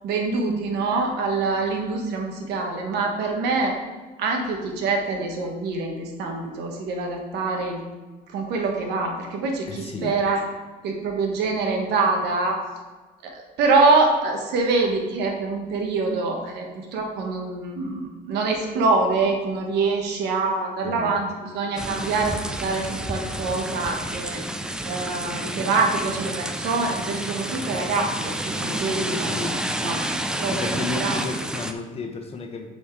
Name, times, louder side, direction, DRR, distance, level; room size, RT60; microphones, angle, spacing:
voice 1, 0.0-3.8 4.2-7.8 8.3-10.4 10.8-12.6 13.2-24.4 24.8-28.3 28.6-29.5 29.8-31.2, right 3 dB, 80° right, 2 dB, 1.3 m, -25 dB
voice 2, 9.7-10.1 20.8-21.1 29.1-30.0 30.5-32.7, left 3 dB, 35° left, 5 dB, 1.0 m, -33 dB
sound 1, 21.8-31.7, right 1 dB, 5° right, 0.4 m, -30 dB
7.1 x 4.4 x 4.7 m, 1.3 s
cardioid pair, 110°, 17 cm